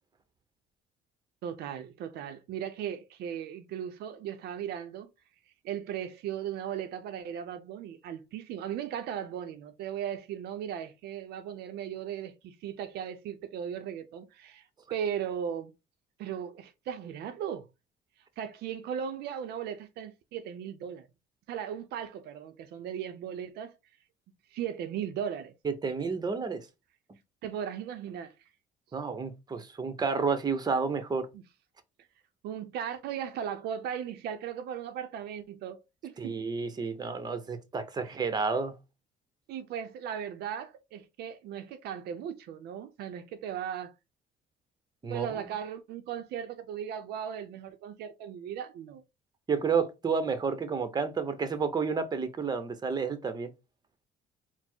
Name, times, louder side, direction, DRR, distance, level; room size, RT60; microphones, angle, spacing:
voice 1, 1.4-5.1 5.6-14.6 14.9-15.7 16.2-17.7 18.4-21.1 21.5-23.7 24.5-25.5 27.4-28.3 31.3-31.4 32.4-36.4 39.5-43.9 45.1-49.0, right 9 dB, 75° right, 0.5 m, -37 dB
voice 2, 25.6-26.7 28.9-31.3 36.2-38.7 45.0-45.5 49.5-53.5, right 5 dB, 25° right, 0.8 m, -30 dB
4.2 x 2.0 x 4.4 m
cardioid pair, 110°, 17 cm